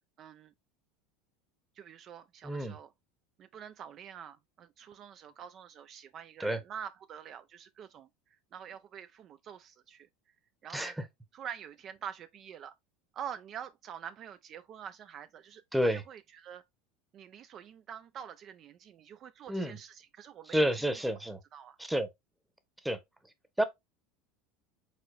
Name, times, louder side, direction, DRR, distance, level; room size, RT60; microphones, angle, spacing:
voice 1, 0.2-0.5 1.8-2.9 3.4-8.1 8.5-10.1 10.6-11.0 11.3-12.7 13.1-15.6 15.9-16.6 17.1-20.8 21.5-21.8, right 8 dB, 40° right, 0.3 m, -46 dB
voice 2, 2.4-2.7 6.4-6.6 10.7-10.9 15.7-16.0 19.5-19.8 20.5-21.4 21.8-22.1 22.8-23.0 23.6-23.7, equal, 5° right, 0.8 m, -29 dB
4.8 x 4.0 x 2.3 m
supercardioid pair, 115°, 0 cm